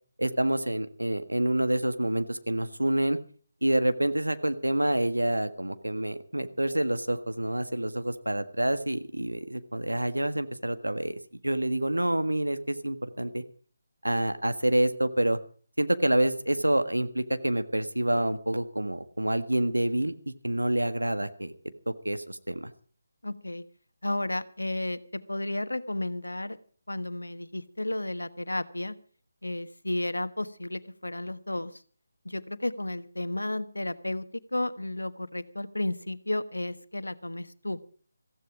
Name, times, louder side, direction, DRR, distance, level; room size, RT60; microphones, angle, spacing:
voice 1, 0.2-3.2 3.6-11.1 11.4-13.4 14.0-15.4 15.8-20.1 20.4-21.5 22.0-22.7, right 1 dB, 90° right, 10 dB, 1.6 m, -27 dB
voice 2, 23.2-23.6 24.0-26.6 26.9-28.9 29.4-31.8 32.2-34.3 34.5-37.8, left 1 dB, 85° left, 13 dB, 1.2 m, -33 dB
15.5 x 15.0 x 4.9 m, 0.43 s
figure-of-eight pair, 155°, 0 cm